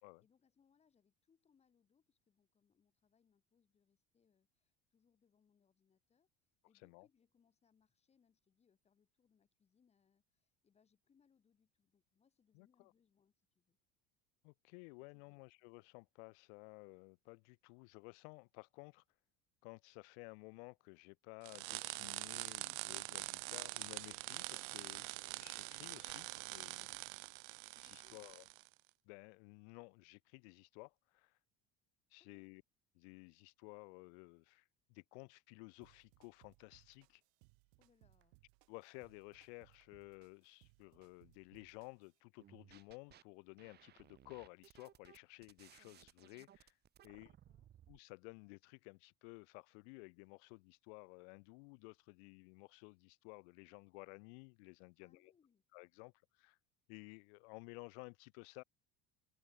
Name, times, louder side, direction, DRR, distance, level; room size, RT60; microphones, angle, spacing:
voice 1, 0.2-6.3 6.6-13.8 15.0-15.4 26.8-27.4 27.7-28.4 32.2-32.5 37.8-38.4 47.1-47.7 55.0-55.6, left 6 dB, 20° left, 7.0 m, -76 dB
voice 2, 12.5-12.9 14.4-19.0 19.6-25.1 25.3-26.9 27.8-28.5 29.1-31.4 32.1-32.6 32.9-37.2 38.7-46.8 47.0-47.3 47.9-55.3 55.7-56.6 56.9-58.6, left 35 dB, 80° left, 3.6 m, -55 dB
sound 1, 21.4-28.7, right 36 dB, 90° right, 0.7 m, -45 dB
sound 2, 35.8-42.2, right 40 dB or more, 75° right, 5.8 m, -70 dB
sound 3, 42.4-43.2 43.6-48.0, right 11 dB, 30° right, 4.1 m, -63 dB
cardioid pair, 180°, 33 cm